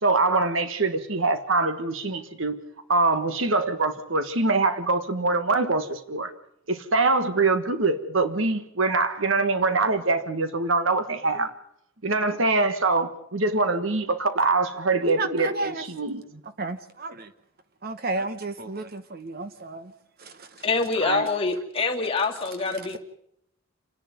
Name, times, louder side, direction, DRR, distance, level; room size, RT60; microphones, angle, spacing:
voice 1, 0.0-2.6 2.9-6.3 6.7-11.5 12.0-16.2 21.0-21.3, right 3 dB, 65° right, 1.5 m, -24 dB
voice 2, 15.0-15.8 16.6-17.3 17.8-19.9 20.2-20.7, right 2 dB, 45° right, 1.0 m, -32 dB
voice 3, 20.6-23.0, left 4 dB, 25° left, 2.5 m, -25 dB
28.0 x 10.5 x 9.6 m
head